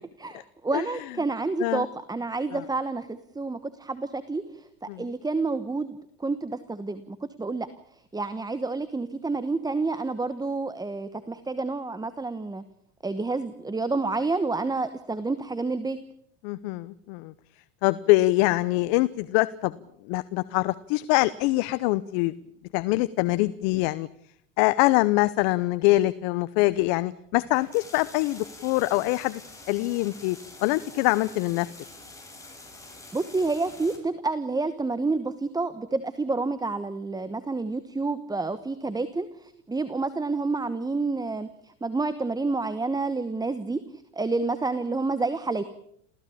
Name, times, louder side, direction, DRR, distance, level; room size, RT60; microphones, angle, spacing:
voice 1, 0.2-7.7 7.9-12.6 13.0-16.0 33.1-43.8 44.1-45.6, right 3 dB, 10° right, 13 dB, 1.2 m, -29 dB
voice 2, 16.4-17.3 17.8-19.7 20.0-22.3 22.7-24.1 24.6-29.4 29.7-31.7, left 19 dB, 65° left, 16 dB, 1.0 m, -24 dB
sound 1, 27.4-34.0, left 2 dB, 10° left, 7.2 m, -46 dB
28.0 x 16.0 x 8.6 m, 0.70 s
supercardioid pair, 115°, 40 cm